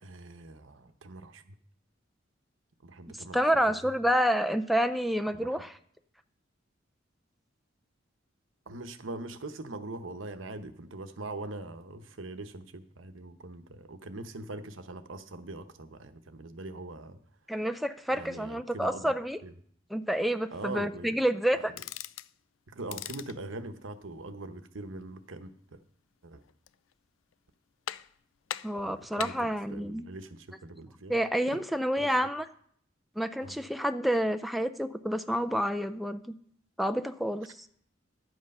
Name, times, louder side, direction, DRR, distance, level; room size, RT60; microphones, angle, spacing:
voice 1, 0.0-1.5 2.8-3.8 5.3-5.6 8.7-17.2 18.1-19.1 19.4-19.5 20.5-21.1 21.5-21.6 22.7-25.8 26.2-26.4 28.8-31.2 32.0-32.1 33.4-33.6, right 2 dB, 85° right, 9 dB, 0.9 m, -42 dB
voice 2, 3.3-5.7 17.5-19.4 19.9-21.7 28.6-30.0 31.1-32.5 33.2-36.2 36.8-37.5, equal, ahead, 9 dB, 0.3 m, -28 dB
sound 1, 21.7-22.3 22.8-23.4 26.4-26.9 27.3-27.4 27.9-28.2 28.5-29.5, left 11 dB, 85° left, 0.4 m, -40 dB
11.0 x 8.1 x 5.4 m, 0.63 s
head